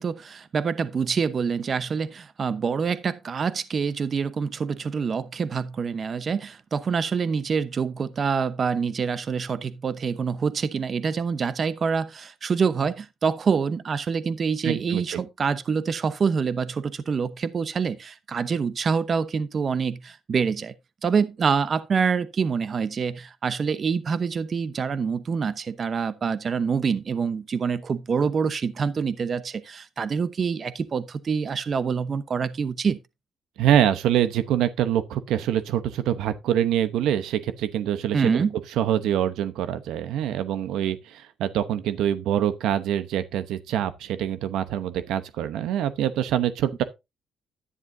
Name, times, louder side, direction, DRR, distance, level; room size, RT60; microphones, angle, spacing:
voice 1, 0.0-20.7 21.0-33.0 38.1-38.5, right 6 dB, 45° right, 0.8 m, -26 dB
voice 2, 14.6-15.2 33.6-38.4 38.8-46.8, right 10 dB, 85° right, 0.8 m, -25 dB
11.0 x 9.9 x 2.6 m
cardioid pair, 90°, 0 cm